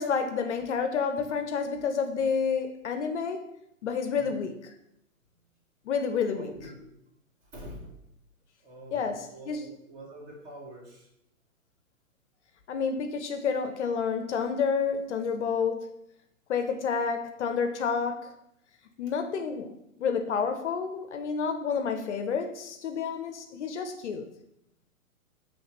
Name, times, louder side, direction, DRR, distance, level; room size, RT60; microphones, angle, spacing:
voice 1, 0.0-3.5 3.8-4.7 5.8-6.7 8.9-9.7 12.7-16.0 16.5-18.3 19.0-24.3, left 6 dB, 55° left, 0.5 m, -29 dB
voice 2, 6.3-6.8 7.4-8.0 8.6-11.1, right 1 dB, 25° right, 1.0 m, -45 dB
5.5 x 3.2 x 2.9 m
hypercardioid pair, 130°, 43 cm